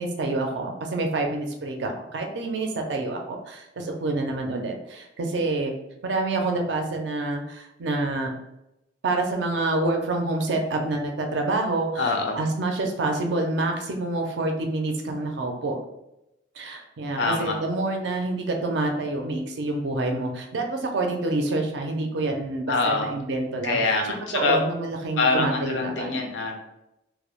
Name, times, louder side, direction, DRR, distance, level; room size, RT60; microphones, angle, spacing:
voice 1, 0.0-5.7 6.0-8.3 9.0-15.8 16.6-23.8 24.3-26.2, right 2 dB, 65° right, 2 dB, 0.4 m, -27 dB
voice 2, 12.0-12.4 17.2-17.6 22.7-23.1 23.6-24.6 25.2-26.6, left 3 dB, 75° left, 3 dB, 0.5 m, -24 dB
2.1 x 2.0 x 2.9 m, 0.88 s
head